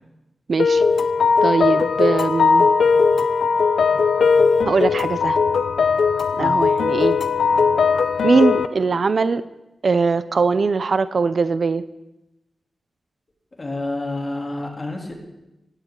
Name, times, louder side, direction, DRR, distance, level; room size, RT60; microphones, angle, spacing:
voice 1, 0.5-0.8 1.4-2.7 4.6-5.4 6.4-7.2 8.2-9.4 9.8-11.8, right 4 dB, 55° right, 13 dB, 0.6 m, -20 dB
sound 1, 0.6-8.7, left 5 dB, 80° left, 0.6 m, -18 dB
voice 2, 13.6-15.1, left 2 dB, 30° left, 0 dB, 3.1 m, -28 dB
17.0 x 17.0 x 3.8 m, 0.95 s
wide cardioid pair, 130°, 0 cm